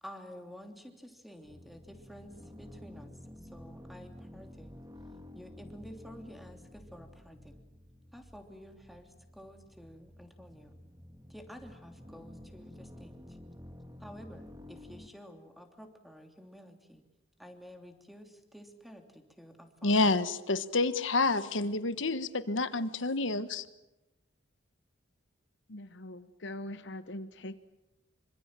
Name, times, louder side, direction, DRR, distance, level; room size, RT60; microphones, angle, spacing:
voice 1, 0.0-3.1 3.4-4.8 5.3-7.6 8.1-10.8 11.3-13.4 14.0-17.1 17.4-20.2, equal, ahead, 4 dB, 3.0 m, -51 dB
sound 1, 1.4-15.1, left 1 dB, 20° right, 1.7 m, -51 dB
voice 2, 19.8-23.6, left 3 dB, 80° left, 12 dB, 1.4 m, -28 dB
voice 3, 25.7-27.6, left 1 dB, 65° left, 11 dB, 1.0 m, -42 dB
26.5 x 25.0 x 7.6 m, 0.97 s
head